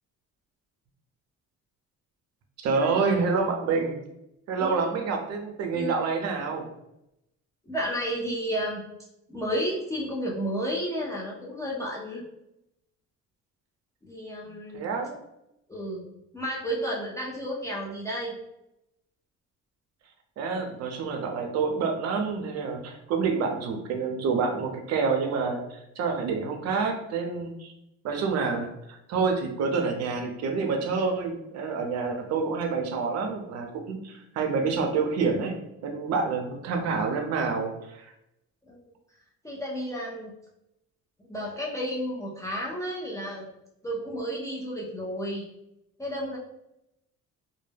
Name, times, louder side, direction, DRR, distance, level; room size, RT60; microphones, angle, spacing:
voice 1, 2.6-4.0 4.5-6.7 14.4-15.2 20.4-27.7 28.0-35.6 35.8-38.1, right 4 dB, 60° right, 3 dB, 0.5 m, -28 dB
voice 2, 4.6-4.9 5.7-6.1 7.7-8.8 9.3-12.2 14.0-14.9 15.7-18.3 38.6-38.8 39.4-40.3 41.3-43.5 43.8-45.5 46.0-46.4, equal, 10° left, -5 dB, 0.3 m, -32 dB
2.2 x 2.1 x 3.2 m, 0.85 s
cardioid pair, 145°, 30 cm